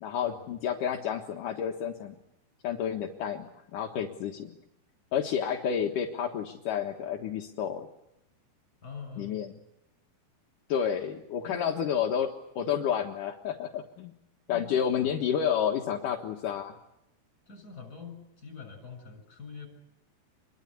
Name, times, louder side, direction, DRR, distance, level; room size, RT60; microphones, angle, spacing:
voice 1, 0.0-2.2 2.6-4.6 5.1-7.9 9.2-9.5 10.7-12.3 12.6-14.1 14.5-16.8, left 8 dB, 60° left, 2 dB, 2.3 m, -30 dB
voice 2, 8.8-9.3 11.4-11.8 14.5-15.1 17.5-19.7, left 5 dB, 20° left, 8 dB, 6.5 m, -44 dB
27.5 x 22.5 x 8.4 m, 0.85 s
omnidirectional pair, 5.5 m